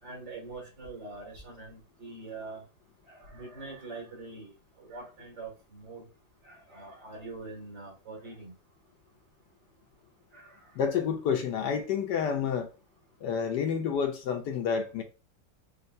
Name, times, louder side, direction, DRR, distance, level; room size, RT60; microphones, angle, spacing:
voice 1, 0.0-2.6 3.1-4.5 4.8-6.0 6.4-8.5 10.3-10.6, right 3 dB, 70° right, 3.0 m, -44 dB
voice 2, 10.8-12.7 13.2-15.0, left 7 dB, 70° left, 1.2 m, -29 dB
6.5 x 2.4 x 2.6 m
omnidirectional pair, 2.1 m